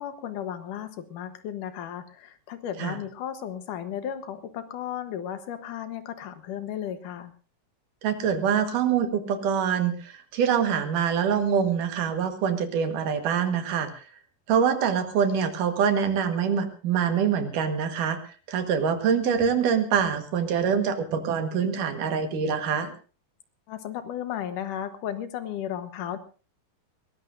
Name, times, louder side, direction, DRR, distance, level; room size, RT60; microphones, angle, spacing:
voice 1, 0.0-7.3 23.7-26.2, left 10 dB, 85° left, 9 dB, 2.8 m, -34 dB
voice 2, 8.0-14.0 14.5-22.9, right 7 dB, 85° right, 7 dB, 3.2 m, -25 dB
21.5 x 19.0 x 2.6 m, 0.36 s
omnidirectional pair, 3.6 m